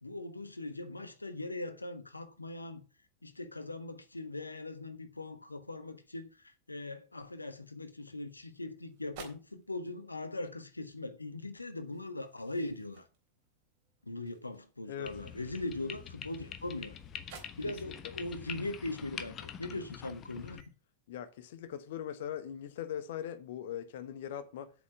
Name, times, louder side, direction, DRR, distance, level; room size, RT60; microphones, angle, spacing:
voice 1, 0.0-2.8 3.2-13.1 14.0-17.0 17.6-20.6, left 2 dB, 80° left, 1.3 m, -40 dB
newspapers large soft, 8.2-20.7, right 6 dB, 50° right, 3.6 m, -59 dB
sound 1, 15.1-20.6, left 8 dB, 30° left, 1.2 m, -45 dB
voice 2, 21.1-24.7, left 10 dB, 55° left, 1.2 m, -40 dB
8.5 x 7.2 x 7.2 m
figure-of-eight pair, 90°, 0 cm